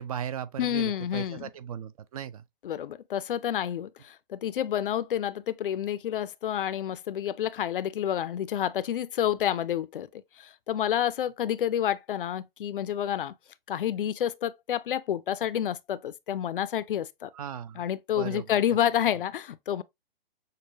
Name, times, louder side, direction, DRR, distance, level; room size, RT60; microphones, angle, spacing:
voice 1, 0.0-2.4 17.3-17.9 18.2-18.6, right 9 dB, 40° right, 0.4 m, -37 dB
voice 2, 0.6-1.5 2.6-13.4 13.7-17.3 17.7-19.8, left 10 dB, 65° left, 0.5 m, -29 dB
6.5 x 2.2 x 2.6 m
hypercardioid pair, 130°, 29 cm